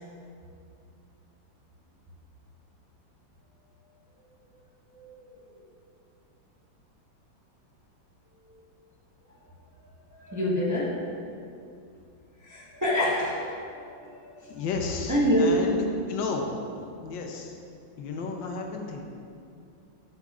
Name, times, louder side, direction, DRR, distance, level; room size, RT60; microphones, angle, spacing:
voice 1, 4.9-5.3 10.1-11.0 12.4-14.7 15.1-15.6, equal, 15° right, -7 dB, 0.7 m, -27 dB
voice 2, 14.5-16.5 17.0-17.5 18.0-19.1, left 4 dB, 75° left, 2 dB, 1.4 m, -33 dB
9.0 x 8.1 x 2.4 m, 2.5 s
omnidirectional pair, 2.1 m